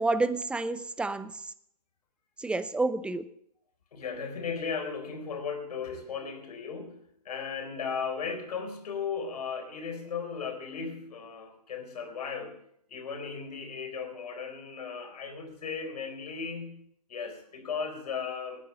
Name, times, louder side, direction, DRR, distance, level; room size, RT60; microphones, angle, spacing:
voice 1, 0.0-1.5 2.4-3.3, right 3 dB, 5° right, 13 dB, 0.6 m, -29 dB
voice 2, 3.9-12.6 12.9-18.7, left 6 dB, 75° left, 5 dB, 4.1 m, -36 dB
19.0 x 9.8 x 5.6 m, 0.70 s
hypercardioid pair, 130°, 20 cm